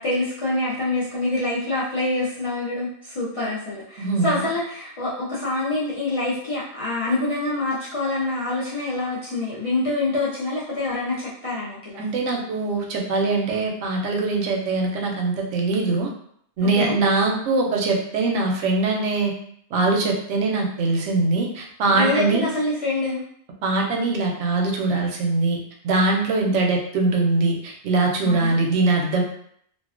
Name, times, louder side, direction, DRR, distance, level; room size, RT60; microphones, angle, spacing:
voice 1, 0.0-12.0 16.8-17.0 21.8-23.2 26.4-26.5 28.2-28.5, left 2 dB, 45° left, -9 dB, 0.4 m, -26 dB
voice 2, 4.0-4.5 12.0-16.1 16.6-19.3 19.7-22.5 23.6-25.6 25.8-29.2, right 3 dB, 90° right, 0 dB, 0.9 m, -22 dB
2.4 x 2.2 x 2.4 m, 0.67 s
omnidirectional pair, 1.2 m